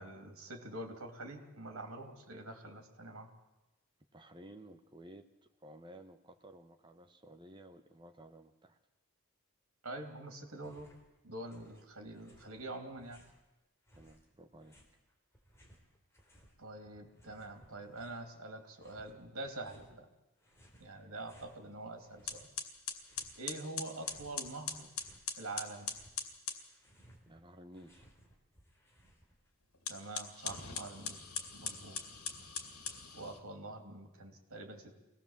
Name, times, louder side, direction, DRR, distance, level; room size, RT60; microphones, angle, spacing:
voice 1, 0.0-3.3 9.8-10.9 11.2-13.2 16.6-20.1 20.8-22.5 23.4-24.9 25.4-25.9 29.9-31.2 31.5-32.0 33.1-35.0, right 2 dB, 80° right, 5 dB, 3.0 m, -45 dB
voice 2, 4.1-5.3 5.6-8.8 14.0-14.8 27.3-28.1, right 1 dB, 20° right, 6 dB, 1.2 m, -54 dB
sound 1, 10.5-11.1 11.3-13.4 13.9-16.6 16.8-18.3 18.7-19.9 20.4-21.6 22.0-23.5 23.8-25.3 25.6-29.5, equal, 10° left, 3.4 m, -63 dB
sound 2, 21.7-21.9 22.3-26.6 29.7-33.4, left 6 dB, 90° left, 2.5 m, -41 dB
24.0 x 18.5 x 7.4 m, 1.0 s
head